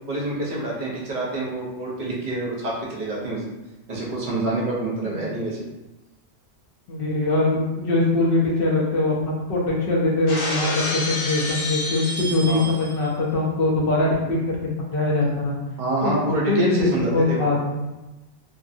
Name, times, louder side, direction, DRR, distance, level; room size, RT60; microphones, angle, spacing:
voice 1, 0.1-3.5 3.9-5.7 12.4-12.6 15.8-17.5, right 1 dB, 50° right, -4 dB, 0.8 m, -26 dB
voice 2, 5.0-5.3 6.9-15.5 16.0-16.1 16.5-17.9, left 2 dB, 55° left, -3 dB, 0.8 m, -22 dB
Shatter, 10.3-13.0, left 2 dB, 85° left, 1.1 m, -28 dB
2.7 x 2.4 x 2.5 m, 1.0 s
omnidirectional pair, 1.2 m